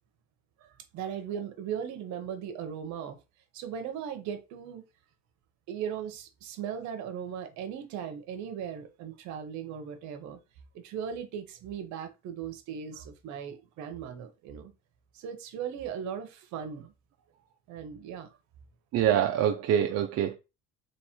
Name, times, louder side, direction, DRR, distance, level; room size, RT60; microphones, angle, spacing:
voice 1, 0.9-3.2 3.5-4.8 5.7-10.4 10.7-14.7 15.1-16.9 17.7-18.3, right 8 dB, 75° right, 1.0 m, -38 dB
voice 2, 18.9-20.4, right 9 dB, 55° right, 0.6 m, -25 dB
3.2 x 3.1 x 4.3 m
cardioid pair, 115°, 29 cm